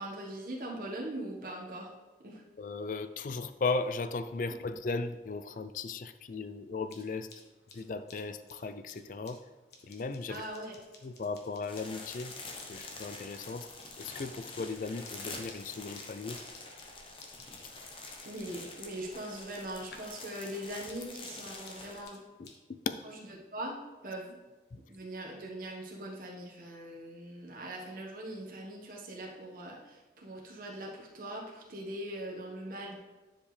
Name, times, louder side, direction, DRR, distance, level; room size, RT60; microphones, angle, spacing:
voice 1, 0.0-1.9 2.2-2.4 10.3-10.7 17.7-22.2 23.5-24.4 24.9-33.0, right 1 dB, 50° right, -2 dB, 1.3 m, -41 dB
voice 2, 2.6-7.3 7.7-9.4 9.8-10.4 11.0-12.3 12.6-13.7 14.0-16.4 22.4-23.0 24.7-24.8, left 3 dB, 50° left, 11 dB, 0.4 m, -36 dB
sound 1, 6.8-20.2 20.5-22.6, left 4 dB, 75° left, 1.1 m, -58 dB
sound 2, 11.7-22.0, left 3 dB, 30° left, 0.9 m, -46 dB
10.0 x 5.1 x 3.3 m, 1.2 s
head